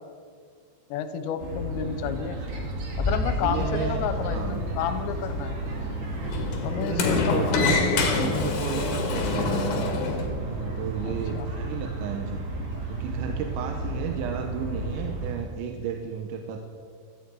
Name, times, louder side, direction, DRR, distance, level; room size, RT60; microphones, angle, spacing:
voice 1, 0.9-2.4 3.0-5.6 6.6-8.3 11.0-11.5, left 8 dB, 85° left, 9 dB, 3.0 m, -31 dB
sound 1, 1.4-15.3, right 2 dB, 50° right, 2.6 m, -33 dB
sound 2, 2.9-5.9, left 3 dB, 20° left, 2.4 m, -32 dB
Sliding door, 3.2-10.3, left 4 dB, 55° left, 2.5 m, -28 dB
voice 2, 3.4-4.7 6.8-9.8 10.4-12.4 12.9-16.6, right 8 dB, 80° right, 4 dB, 3.1 m, -33 dB
16.5 x 14.0 x 4.7 m, 2.1 s
omnidirectional pair, 5.2 m